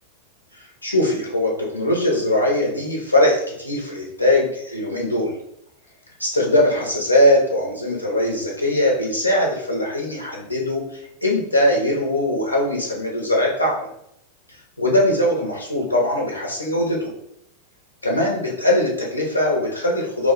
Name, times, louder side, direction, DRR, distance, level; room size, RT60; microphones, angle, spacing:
voice 1, 0.8-5.3 6.2-13.9 14.8-17.1 18.0-20.3, left 1 dB, 85° left, -1 dB, 0.8 m, -21 dB
2.9 x 2.2 x 4.0 m, 0.75 s
figure-of-eight pair, 90°, 0 cm